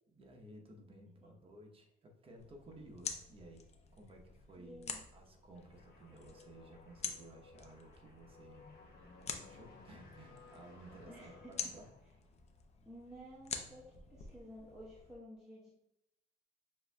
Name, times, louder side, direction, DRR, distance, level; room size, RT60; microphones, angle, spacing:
voice 1, 0.1-3.6 3.9-8.6 9.4-11.9, right 1 dB, 35° right, 2 dB, 0.9 m, -56 dB
sound 1, 2.4-15.1, left 6 dB, 40° left, 0.6 m, -48 dB
voice 2, 4.6-5.0 11.1-11.7 12.8-15.7, equal, 5° right, -8 dB, 0.9 m, -53 dB
sound 2, 5.5-12.3, left 4 dB, 65° left, 1.2 m, -60 dB
6.9 x 2.6 x 2.2 m, 0.82 s
cardioid pair, 110°, 17 cm